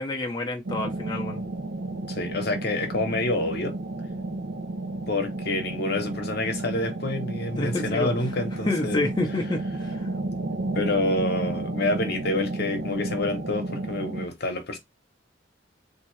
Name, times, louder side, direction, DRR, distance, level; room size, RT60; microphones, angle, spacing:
voice 1, 0.0-1.4 7.6-8.1 8.7-10.1, left 2 dB, 25° left, 0.6 m, -28 dB
sound 1, 0.6-14.3, right 2 dB, 70° right, 0.5 m, -32 dB
voice 2, 2.1-3.7 5.1-9.0 10.7-14.8, left 2 dB, 60° left, 0.9 m, -28 dB
3.6 x 2.6 x 3.1 m
head